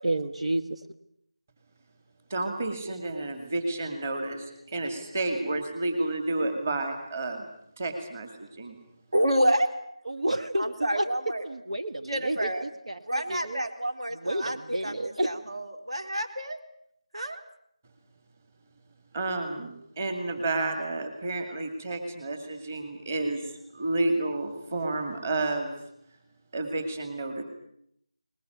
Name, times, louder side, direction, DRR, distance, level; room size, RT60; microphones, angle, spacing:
voice 1, 0.0-0.8 10.0-11.1 11.4-13.6 14.1-15.3, right 1 dB, 85° right, 7 dB, 1.6 m, -30 dB
voice 2, 2.3-7.5 7.8-8.8 19.1-25.8 26.5-27.4, right 2 dB, 20° right, 6 dB, 2.4 m, -31 dB
voice 3, 9.1-9.7 10.6-11.4 12.1-12.6 13.1-14.6 14.8-16.6 17.1-17.4, right 1 dB, 60° right, 6 dB, 3.8 m, -28 dB
21.0 x 21.0 x 9.4 m, 0.72 s
figure-of-eight pair, 175°, 3 cm